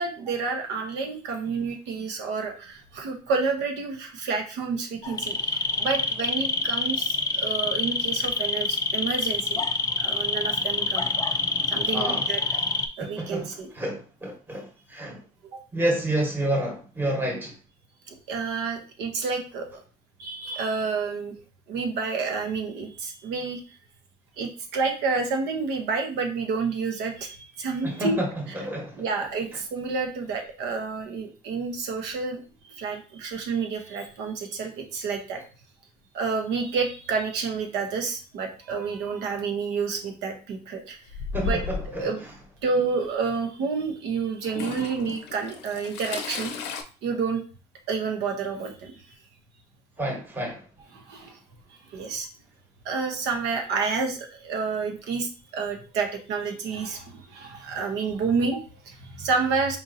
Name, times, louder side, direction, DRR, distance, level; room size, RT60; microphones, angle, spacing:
voice 1, 0.0-9.6 10.0-11.1 11.7-12.4 12.9-13.7 15.5-15.6 18.1-19.8 20.2-21.3 21.7-23.6 24.4-28.2 29.0-35.4 36.1-41.0 41.4-41.6 41.9-42.2 42.6-46.7 47.0-47.4 47.9-49.0 50.9-51.4 51.9-52.3 52.8-59.8, right 4 dB, 85° right, 0.9 m, -29 dB
sound 1, 5.0-12.9, left 4 dB, 20° left, 0.4 m, -26 dB
voice 2, 11.9-12.3 13.0-15.2 15.7-17.5 27.8-29.0 41.3-42.1 50.0-50.6, right 1 dB, 10° right, 1.0 m, -29 dB
Toilet flush / Trickle dribble, 41.1-42.0 43.0-43.1 44.4-46.8, left 5 dB, 90° left, 0.6 m, -34 dB
4.5 x 2.7 x 2.6 m
cardioid pair, 110°, 17 cm